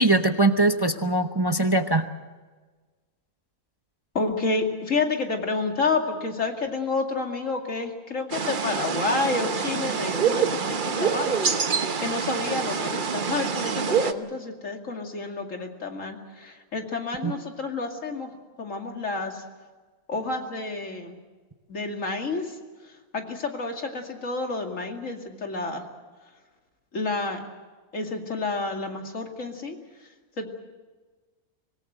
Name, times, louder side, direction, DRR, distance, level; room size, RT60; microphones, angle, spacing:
voice 1, 0.0-2.0 17.2-17.3, right 2 dB, 20° right, 7 dB, 0.7 m, -21 dB
voice 2, 4.1-11.4 12.0-18.3 18.6-19.4 20.1-21.2 21.7-22.4 23.1-25.8 26.9-27.4 27.9-29.8 30.4-30.5, left 3 dB, 60° left, 3 dB, 2.7 m, -29 dB
sound 1, 8.3-14.1, right 6 dB, 40° right, 1.0 m, -26 dB
25.5 x 18.0 x 7.9 m, 1.3 s
omnidirectional pair, 1.5 m